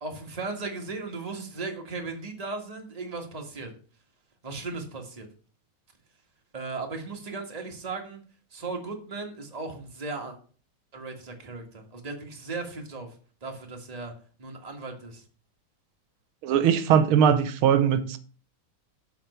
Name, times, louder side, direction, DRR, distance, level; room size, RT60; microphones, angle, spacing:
voice 1, 0.0-3.7 4.4-5.2 6.5-8.2 8.5-10.4 10.9-13.1 13.4-14.1 14.4-15.2, right 3 dB, 20° right, 1.6 m, -36 dB
voice 2, 16.4-18.2, right 8 dB, 90° right, 1.7 m, -20 dB
7.4 x 5.4 x 6.9 m
omnidirectional pair, 2.2 m